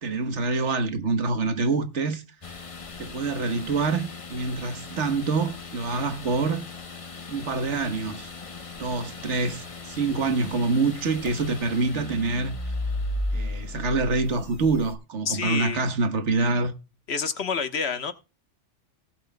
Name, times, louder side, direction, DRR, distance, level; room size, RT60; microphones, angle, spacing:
voice 1, 0.0-2.2 3.0-6.7 7.3-8.3 8.8-12.5 13.3-16.7, right 3 dB, 75° right, 1.5 m, -26 dB
sound 1, 2.4-15.0, left 2 dB, 30° left, 1.0 m, -36 dB
voice 2, 15.2-15.9 17.1-18.1, left 6 dB, 65° left, 1.3 m, -28 dB
18.0 x 7.7 x 2.2 m
omnidirectional pair, 1.2 m